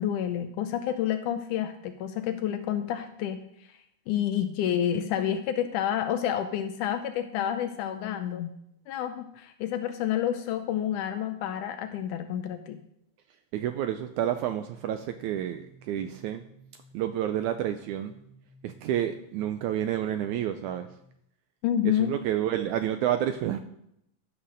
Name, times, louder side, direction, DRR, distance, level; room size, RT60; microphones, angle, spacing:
voice 1, 0.0-3.4 4.1-8.5 8.9-12.8 21.6-22.1, left 10 dB, 80° left, 9 dB, 1.9 m, -29 dB
voice 2, 13.5-16.4 16.9-18.1 18.6-20.9 21.8-23.6, right 11 dB, 80° right, 9 dB, 1.8 m, -29 dB
sound 1, 14.3-21.2, right 2 dB, 65° left, 2.8 m, -56 dB
13.0 x 5.9 x 6.4 m, 0.76 s
omnidirectional pair, 4.0 m